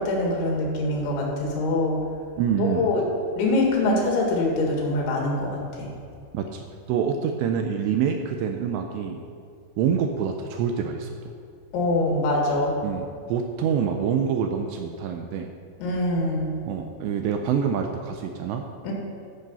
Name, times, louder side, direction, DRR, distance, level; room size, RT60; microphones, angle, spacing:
voice 1, 0.0-2.0 2.6-3.0 3.4-5.9 11.7-12.7 15.8-16.5 18.8-18.9, left 2 dB, 75° left, -1 dB, 4.1 m, -24 dB
voice 2, 2.4-2.9 6.3-9.2 9.8-11.3 12.8-15.5 16.7-18.7, right 7 dB, 80° right, 4 dB, 2.6 m, -26 dB
13.5 x 6.6 x 5.5 m, 2.3 s
omnidirectional pair, 5.5 m